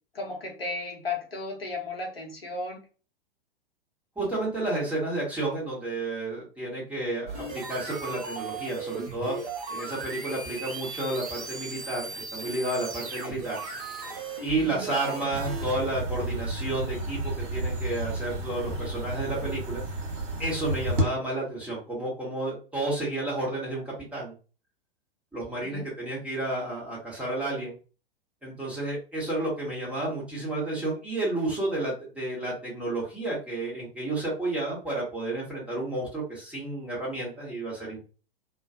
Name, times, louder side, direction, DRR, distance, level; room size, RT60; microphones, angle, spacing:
voice 1, 0.1-2.8 25.7-25.9, left 3 dB, 80° left, 0 dB, 0.9 m, -34 dB
voice 2, 4.2-9.4 9.7-13.6 14.4-19.8 20.4-24.3 25.3-27.8 28.4-38.0, right 2 dB, 5° right, -5 dB, 1.1 m, -31 dB
sound 1, 7.3-15.7, right 4 dB, 40° right, 0.8 m, -37 dB
sound 2, 15.3-21.0, right 1 dB, 60° right, 1.1 m, -31 dB
2.4 x 2.2 x 2.6 m, 0.35 s
figure-of-eight pair, 100°, 30 cm